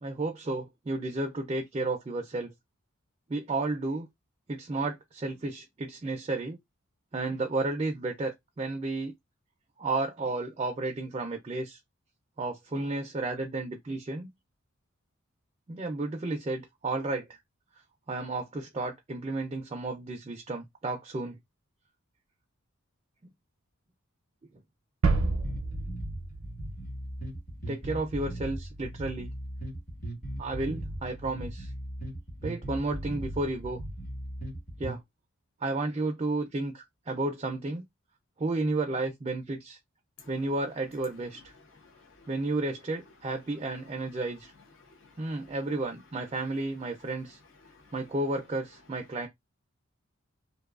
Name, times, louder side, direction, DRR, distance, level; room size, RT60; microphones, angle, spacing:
voice 1, 0.0-2.5 3.3-4.1 4.5-6.6 7.1-9.1 9.8-11.8 12.4-14.3 15.7-17.3 18.1-21.4 27.7-29.3 30.4-31.7 32.4-33.8 34.8-35.0 35.6-37.8 38.4-39.8 40.3-41.5 42.3-44.5 45.2-47.4 47.9-49.3, right 2 dB, 25° right, 0.3 m, -32 dB
sound 1, 25.0-27.7, right 3 dB, 85° right, 0.5 m, -30 dB
sound 2, 25.4-35.0, right 1 dB, 40° left, 1.1 m, -38 dB
voice 2, 41.8-42.3 45.0-45.3 47.7-47.8, left 4 dB, 65° left, 0.7 m, -58 dB
2.6 x 2.2 x 2.3 m
head